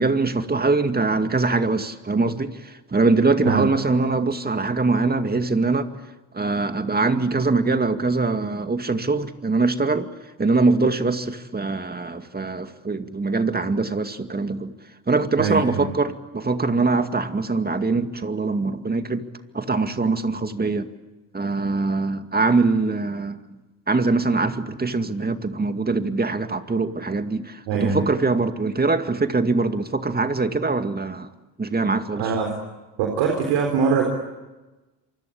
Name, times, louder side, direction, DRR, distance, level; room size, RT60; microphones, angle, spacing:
voice 1, 0.0-5.9 6.3-10.1 10.4-14.7 15.1-19.3 19.5-20.9 21.3-23.4 23.9-31.3 31.6-32.3, right 3 dB, 20° right, 2.3 m, -23 dB
voice 2, 15.4-15.9 27.7-28.0 32.2-32.5 33.0-34.1, right 5 dB, 80° right, 4.1 m, -22 dB
28.0 x 24.5 x 8.7 m
supercardioid pair, 70°, 43 cm